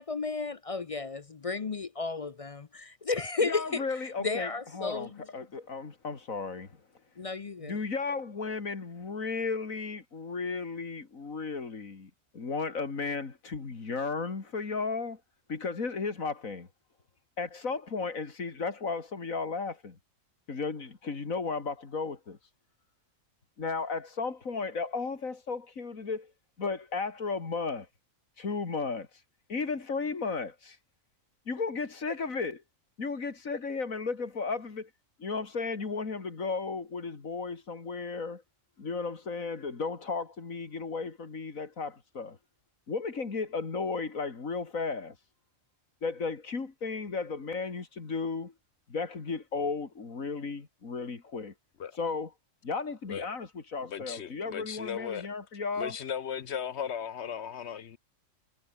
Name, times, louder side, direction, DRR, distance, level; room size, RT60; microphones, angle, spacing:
voice 1, 0.0-3.8 4.2-5.2 7.2-7.8, left 4 dB, 40° left, 0.5 m, -33 dB
voice 2, 3.4-6.8 7.6-15.2 15.5-16.7 17.4-20.0 20.5-22.4 23.6-26.3 26.6-27.9 28.4-29.1 29.5-30.8 31.5-32.6 33.0-34.9 35.2-38.4 38.8-42.4 42.9-45.2 46.0-48.5 48.9-51.5 52.0-52.3 52.6-56.0, left 4 dB, 85° left, 3.0 m, -34 dB
voice 3, 53.8-55.3 55.8-58.0, left 8 dB, 60° left, 1.1 m, -36 dB
omnidirectional pair, 1.4 m